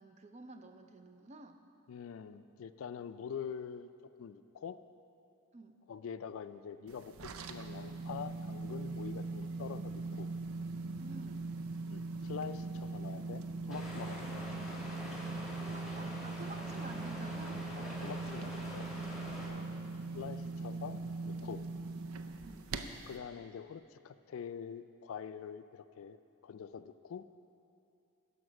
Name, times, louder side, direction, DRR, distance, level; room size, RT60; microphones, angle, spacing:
voice 1, 0.0-1.6 5.5-5.7 9.1-9.2 11.0-11.5 14.3-14.5 15.3-17.6 18.0-18.2 19.4-20.0 22.4-22.8, right 3 dB, 30° right, 7 dB, 0.4 m, -52 dB
voice 2, 1.9-3.9 4.2-4.8 5.9-10.3 11.9-14.4 17.7-18.9 19.5-19.6 20.1-21.6 23.1-26.2 26.4-27.2, left 7 dB, 75° left, 13 dB, 0.3 m, -45 dB
sound 1, 6.9-23.2, right 3 dB, 80° right, 0.5 m, -41 dB
sound 2, 13.7-19.5, equal, ahead, 1.4 m, -45 dB
11.0 x 5.2 x 6.3 m, 2.6 s
head